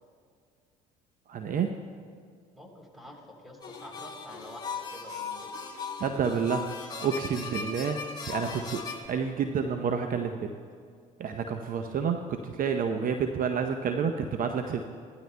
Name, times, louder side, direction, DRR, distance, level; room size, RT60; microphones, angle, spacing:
voice 1, 1.3-1.7 6.0-6.7 7.0-8.0 8.3-8.8 9.1-10.4 11.2-12.2 12.6-14.8, right 6 dB, 50° right, 6 dB, 0.7 m, -29 dB
voice 2, 2.5-5.5 7.4-8.1, left 1 dB, ahead, 1 dB, 3.4 m, -48 dB
sound 1, 3.6-9.1, left 5 dB, 20° left, 2.6 m, -38 dB
17.5 x 12.5 x 2.2 m, 2.1 s
hypercardioid pair, 60°, 19 cm